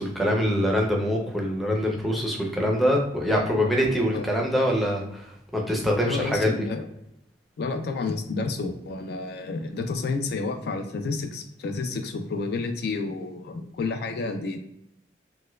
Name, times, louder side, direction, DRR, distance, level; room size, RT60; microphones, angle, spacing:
voice 1, 0.0-6.5, equal, ahead, -1 dB, 0.5 m, -24 dB
voice 2, 6.0-6.9 7.6-14.6, left 3 dB, 65° left, 6 dB, 0.4 m, -30 dB
4.3 x 2.2 x 2.2 m, 0.78 s
head